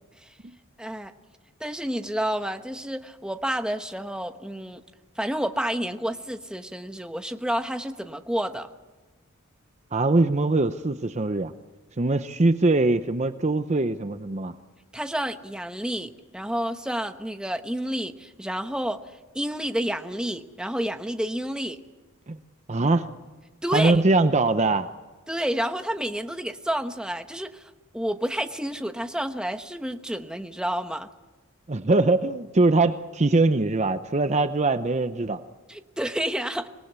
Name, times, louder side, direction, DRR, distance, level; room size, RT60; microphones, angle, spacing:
voice 1, 0.8-1.1 1.6-4.8 5.2-8.7 14.9-19.0 19.3-21.8 23.6-24.0 25.3-31.1 35.7-36.7, equal, 5° right, 7 dB, 1.0 m, -30 dB
voice 2, 9.9-11.5 12.0-14.5 22.3-22.4 22.7-23.1 23.7-24.9 31.7-35.4, right 2 dB, 30° right, 10 dB, 0.7 m, -22 dB
26.0 x 19.0 x 8.2 m, 1.2 s
head